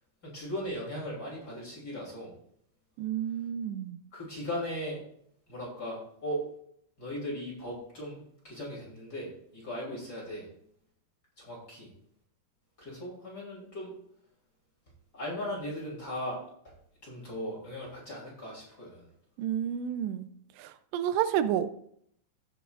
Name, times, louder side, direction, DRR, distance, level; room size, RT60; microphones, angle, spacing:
voice 1, 0.2-2.3 4.1-5.0 5.5-6.4 7.0-10.5 11.4-11.9 12.8-13.9 15.1-16.4 17.0-19.1, equal, 25° left, -4 dB, 2.9 m, -38 dB
voice 2, 3.0-4.0 19.4-20.3 20.6-21.7, right 10 dB, 85° right, 11 dB, 2.8 m, -30 dB
17.0 x 7.0 x 2.5 m, 0.68 s
omnidirectional pair, 5.0 m